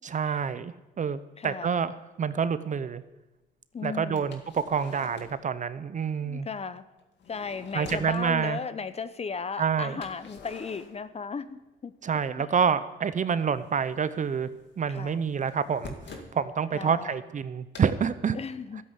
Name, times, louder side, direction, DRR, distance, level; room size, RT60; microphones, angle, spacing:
voice 1, 0.1-3.0 3.8-6.5 7.7-8.6 9.6-10.0 12.0-14.5 14.8-18.4, right 6 dB, 40° right, 14 dB, 0.7 m, -28 dB
voice 2, 1.4-1.8 3.7-4.4 6.2-6.8 7.3-11.9 12.4-12.5 14.9-15.2 16.7-17.2 18.3-18.8, left 5 dB, 30° left, 13 dB, 0.8 m, -36 dB
sound 1, 4.2-5.5 7.0-8.2 10.0-11.7 11.9-12.8 13.1-16.4 17.7-17.9, left 4 dB, 65° left, 2.0 m, -47 dB
13.0 x 8.0 x 8.2 m, 1.1 s
cardioid pair, 90°, 20 cm